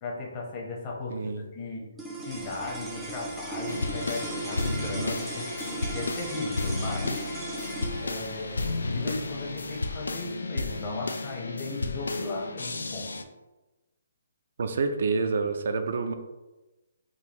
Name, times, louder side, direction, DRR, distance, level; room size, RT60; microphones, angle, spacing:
voice 1, 0.0-1.8 2.2-5.5 5.9-7.3 8.0-13.1, left 3 dB, 35° left, -1 dB, 0.9 m, -36 dB
voice 2, 1.1-1.4 14.6-16.1, right 4 dB, 65° right, 7 dB, 0.4 m, -28 dB
sound 1, 2.0-12.4, right 2 dB, 5° right, 0.5 m, -39 dB
sound 2, 2.3-11.0, left 4 dB, 60° left, 0.9 m, -48 dB
sound 3, 3.7-13.2, left 3 dB, 85° left, 0.3 m, -33 dB
3.8 x 2.5 x 2.9 m, 1.1 s
hypercardioid pair, 150°, 0 cm